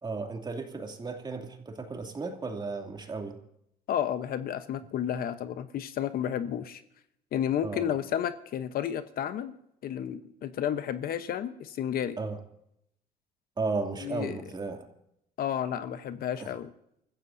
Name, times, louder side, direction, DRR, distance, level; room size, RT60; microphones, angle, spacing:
voice 1, 0.0-3.4 7.6-8.0 12.2-12.4 13.6-14.9 16.4-16.5, right 3 dB, 25° right, 4 dB, 2.6 m, -34 dB
voice 2, 3.9-6.8 7.3-9.5 9.8-12.2 14.0-14.4 15.4-16.7, left 9 dB, 60° left, 11 dB, 1.0 m, -31 dB
30.0 x 15.0 x 2.7 m, 0.78 s
cardioid pair, 110°, 17 cm